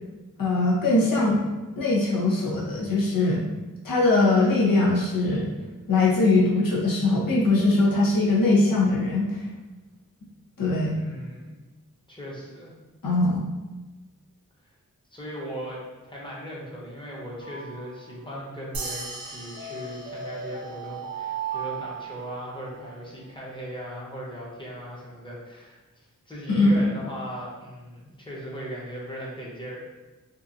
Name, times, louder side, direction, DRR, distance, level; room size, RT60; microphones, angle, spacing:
voice 1, 0.4-1.4 1.8-3.4 3.8-5.5 5.9-9.4 10.6-11.0 13.0-13.4 26.5-26.8, left 2 dB, 75° left, -5 dB, 0.8 m, -21 dB
voice 2, 10.9-11.6 12.1-12.7 15.1-29.8, equal, 15° left, -5 dB, 0.8 m, -38 dB
sound 1, 17.4-18.5 19.6-22.8, right 7 dB, 25° right, 0.5 m, -36 dB
sound 2, 18.7-21.5, right 2 dB, 80° right, 0.5 m, -39 dB
2.8 x 2.4 x 2.5 m, 1.2 s
wide cardioid pair, 60°, 34 cm